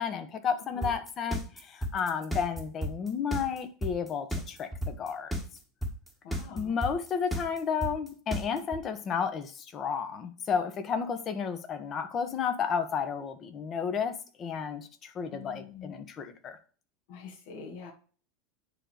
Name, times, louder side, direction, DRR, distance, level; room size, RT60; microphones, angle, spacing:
voice 1, 0.0-5.3 6.6-16.6, left 6 dB, 25° left, 9 dB, 1.2 m, -32 dB
sound 1, 0.8-8.8, equal, ahead, 1.5 m, -32 dB
voice 2, 6.2-6.8 15.3-15.9 17.1-17.9, left 5 dB, 60° left, 0 dB, 2.4 m, -45 dB
9.9 x 3.9 x 6.6 m, 0.39 s
supercardioid pair, 160°, 0 cm